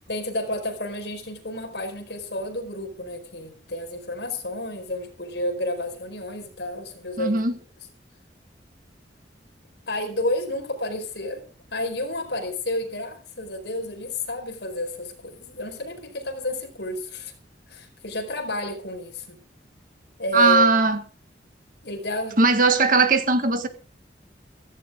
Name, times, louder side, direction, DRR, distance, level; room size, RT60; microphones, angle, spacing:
voice 1, 0.1-7.4 9.9-11.4 11.7-17.3 17.7-19.4 20.2-20.7 21.8-22.4, left 1 dB, 75° left, 4.8 m, -30 dB
voice 2, 7.2-7.5 20.3-21.0 22.4-23.7, right 3 dB, 50° right, 1.7 m, -19 dB
16.0 x 15.5 x 3.7 m
head